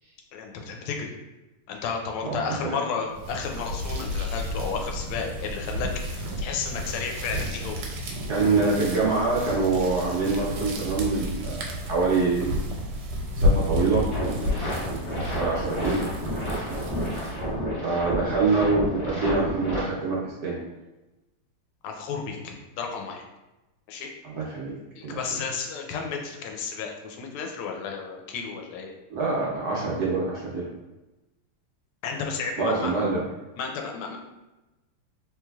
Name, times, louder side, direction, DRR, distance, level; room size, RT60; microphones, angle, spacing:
voice 1, 0.3-1.1 1.7-7.8 21.8-23.2 23.9-24.1 25.0-28.9 32.0-33.0 33.6-34.2, left 5 dB, 80° left, 2 dB, 1.5 m, -32 dB
voice 2, 2.2-2.7 8.3-12.6 13.4-14.5 15.4-16.0 16.7-16.8 17.8-20.6 24.2-24.8 25.0-25.2 29.1-30.7 32.6-33.2, right 3 dB, 75° right, -5 dB, 0.9 m, -25 dB
sound 1, 3.1-17.6, left 1 dB, 90° right, 1.5 m, -31 dB
sound 2, 14.1-19.8, equal, 30° left, 0.7 m, -31 dB
3.3 x 3.1 x 2.3 m, 1.0 s
omnidirectional pair, 2.4 m